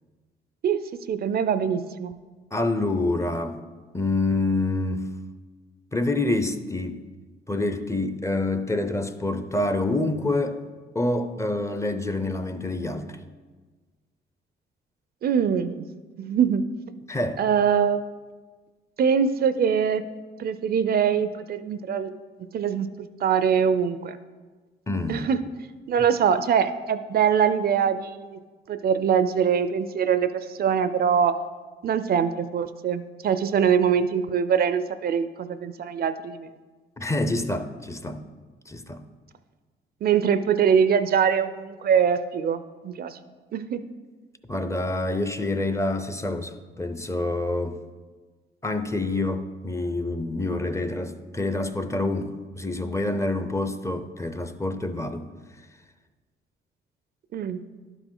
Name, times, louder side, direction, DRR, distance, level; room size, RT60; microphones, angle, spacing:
voice 1, 0.6-2.1 15.2-15.9 16.2-16.6 17.4-18.0 19.0-20.0 20.4-22.1 22.5-24.2 25.1-25.4 25.9-28.4 28.7-31.3 31.8-36.5 40.0-43.2 43.5-43.8 57.3-57.6, right 7 dB, 50° right, 12 dB, 0.4 m, -23 dB
voice 2, 2.5-3.6 3.9-5.1 5.9-7.0 7.5-10.6 10.9-13.2 17.1-17.4 24.9-25.3 37.0-38.2 38.7-39.0 44.5-47.8 48.6-55.3, left 2 dB, 15° left, 9 dB, 0.5 m, -27 dB
11.5 x 5.0 x 3.8 m, 1.4 s
cardioid pair, 90°, 20 cm